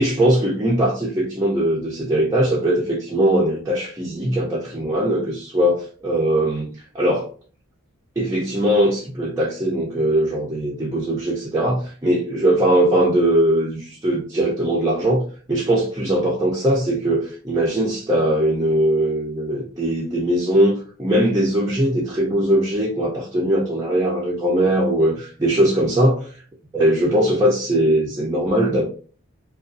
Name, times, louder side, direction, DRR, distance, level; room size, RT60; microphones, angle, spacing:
voice 1, 0.0-7.3 8.2-26.2 26.7-28.8, right 1 dB, 15° right, 0.4 m, -20 dB
2.5 x 2.3 x 2.4 m
head